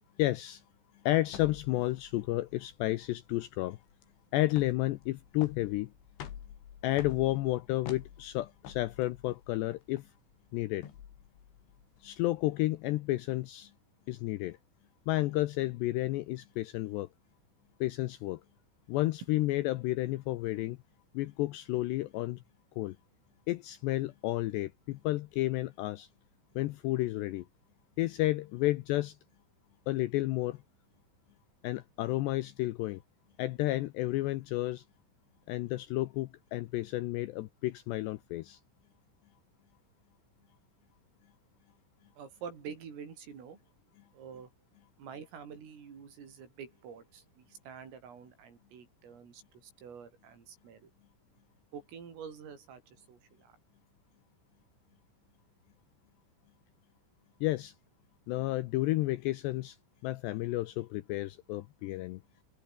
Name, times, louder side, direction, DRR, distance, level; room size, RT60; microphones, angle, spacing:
voice 1, 0.2-0.6 1.1-3.8 4.3-5.9 6.8-10.0 10.5-10.9 12.0-13.7 14.1-14.6 15.1-17.1 17.8-18.4 18.9-20.8 21.1-22.4 22.8-23.0 23.5-26.1 26.6-27.5 28.0-29.2 29.9-30.6 31.6-33.0 33.4-34.8 35.5-38.6 57.4-57.7 58.3-59.8 60.0-62.2, left 17 dB, 85° left, 2.5 m, -31 dB
sound 1, 1.3-12.5, left 9 dB, 70° left, 5.1 m, -49 dB
voice 2, 42.2-43.6 44.1-44.5 45.0-50.9 51.7-53.6, right 7 dB, 80° right, 7.9 m, -47 dB
omnidirectional pair, 5.8 m